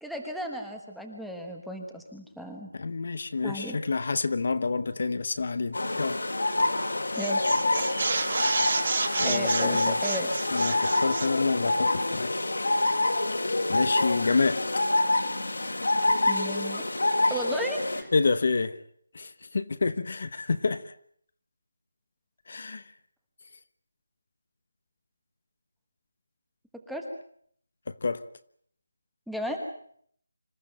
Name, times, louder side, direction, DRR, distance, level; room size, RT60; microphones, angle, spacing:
voice 1, 0.0-2.7 3.4-3.8 7.1-7.4 9.0-10.3 16.2-16.8 17.3-18.1 26.9-27.0 29.3-29.6, equal, ahead, 1.2 m, -34 dB
voice 2, 2.7-6.2 9.2-10.0 10.5-12.3 13.7-14.6 18.1-18.8 19.1-20.9 22.5-22.9 27.9-28.2, left 4 dB, 40° left, 1.0 m, -28 dB
sound 1, 5.7-18.0, left 2 dB, 85° left, 4.8 m, -27 dB
sound 2, 6.6-6.9 7.1-11.4, right 4 dB, 35° right, 1.7 m, -31 dB
26.0 x 14.5 x 8.9 m
figure-of-eight pair, 180°, 0 cm